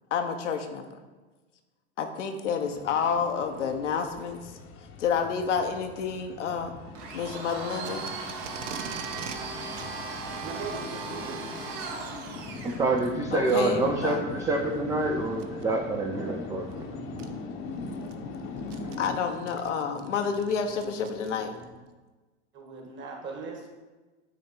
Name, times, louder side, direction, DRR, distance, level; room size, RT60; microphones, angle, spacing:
voice 1, 0.1-0.9 2.0-4.5 5.0-6.7 7.1-8.1 13.3-14.2 19.0-21.5, left 6 dB, 85° left, 5 dB, 0.9 m, -29 dB
sound 1, 2.6-19.2, left 4 dB, 40° left, 0.8 m, -41 dB
Domestic sounds home sounds, 6.9-12.8, right 4 dB, 60° right, 1.2 m, -37 dB
Packing tape duct tape, 7.8-9.4 9.7-9.9 10.6-10.9 12.0-12.3 13.0-13.1 13.7-13.8 15.3-15.6 16.7-16.8 17.2-17.3 17.8-21.7, right 7 dB, 90° right, 0.7 m, -43 dB
voice 2, 10.4-11.4 22.5-23.7, right 4 dB, 30° right, 1 dB, 1.5 m, -39 dB
voice 3, 11.9-19.0 19.9-20.1 21.6-21.7, right 3 dB, 10° right, 2 dB, 0.4 m, -29 dB
9.2 x 3.1 x 4.3 m, 1.2 s
hypercardioid pair, 105°, 35 cm